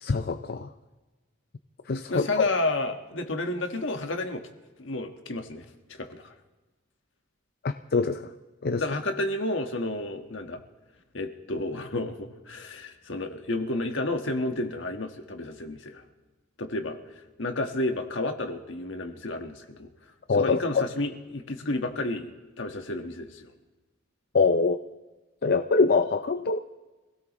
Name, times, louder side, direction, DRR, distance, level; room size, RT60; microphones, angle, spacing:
voice 1, 0.0-0.7 1.9-2.4 7.6-8.3 8.6-8.8 20.3-20.8 24.3-24.8 25.4-26.6, left 4 dB, 50° left, 8 dB, 0.5 m, -24 dB
voice 2, 2.1-4.4 4.8-6.3 8.8-10.6 11.1-16.0 16.6-17.0 17.4-19.9 20.3-23.5, left 2 dB, 65° left, 5 dB, 1.4 m, -31 dB
26.5 x 17.0 x 3.1 m, 1.2 s
head